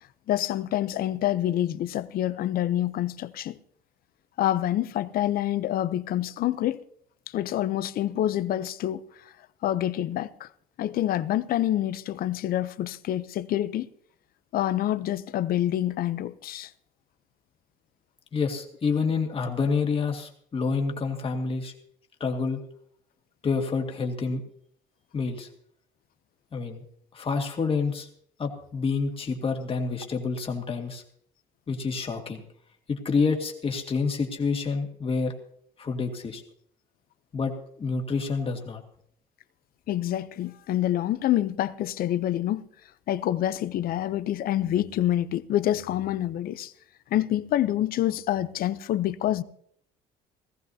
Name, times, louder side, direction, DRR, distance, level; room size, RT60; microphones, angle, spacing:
voice 1, 0.3-3.6 4.4-6.8 7.3-9.0 9.6-10.5 10.8-13.9 14.5-16.7 39.9-42.6 43.1-46.7 47.1-49.4, left 12 dB, 60° left, 0.6 m, -27 dB
voice 2, 18.3-21.7 22.2-22.6 23.4-24.4 25.1-25.5 26.5-26.8 27.1-28.1 28.4-31.0 31.7-32.4 32.9-35.3 35.8-36.4 37.3-38.8, left 4 dB, 35° left, 2.0 m, -28 dB
18.0 x 15.0 x 2.7 m
cardioid pair, 110°, 17 cm